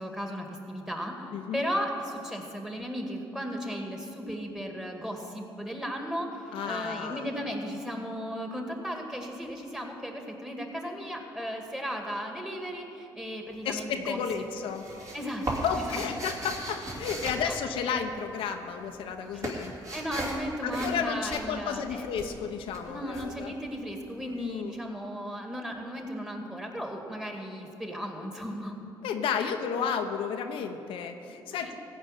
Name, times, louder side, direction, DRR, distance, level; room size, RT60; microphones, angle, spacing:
voice 1, 0.0-14.2 15.1-15.6 15.9-16.0 17.4-17.5 19.3-19.4 19.9-22.2 22.9-28.8 29.4-29.5 31.5-31.7, equal, 5° right, 2 dB, 2.1 m, -36 dB
voice 2, 1.3-1.6 6.5-7.3 13.6-14.8 15.6-19.7 20.6-23.5 24.2-24.8 29.0-31.7, left 7 dB, 80° left, 5 dB, 0.8 m, -32 dB
sound 1, 13.5-14.0 14.3-18.4 18.6-24.2, right 1 dB, 40° right, 2.8 m, -37 dB
15.5 x 5.4 x 9.0 m, 2.8 s
cardioid pair, 80°, 9 cm